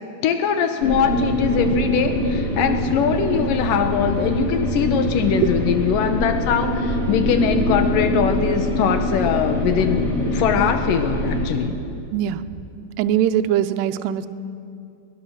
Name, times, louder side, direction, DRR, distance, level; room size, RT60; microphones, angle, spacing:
voice 1, 0.2-11.8, left 7 dB, 85° left, 7 dB, 1.9 m, -22 dB
sound 1, 0.8-11.5, left 1 dB, 35° left, 1.3 m, -23 dB
voice 2, 12.1-12.4 13.0-14.3, right 11 dB, 80° right, 9 dB, 2.5 m, -21 dB
24.0 x 20.0 x 6.4 m, 2.6 s
omnidirectional pair, 5.3 m